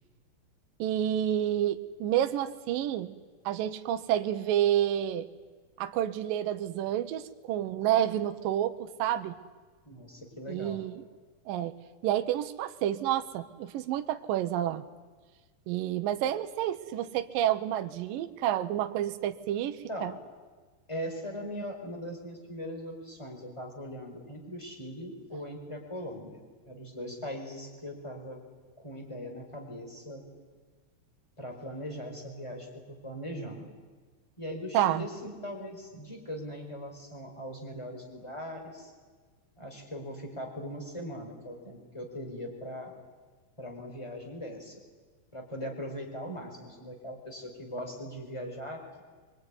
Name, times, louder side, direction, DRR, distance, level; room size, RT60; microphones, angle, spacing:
voice 1, 0.8-3.1 3.5-5.3 5.8-9.4 10.5-11.0 11.5-11.7 12.0-14.8 15.7-20.1 34.7-35.1, right 11 dB, 70° right, 8 dB, 2.2 m, -29 dB
voice 2, 9.8-10.8 19.9-20.1 20.9-28.4 28.8-30.2 31.4-33.7 34.4-38.9 39.6-43.0 43.6-44.8 45.3-49.0, equal, 5° left, 3 dB, 4.2 m, -40 dB
24.5 x 24.0 x 9.7 m, 1.4 s
omnidirectional pair, 4.9 m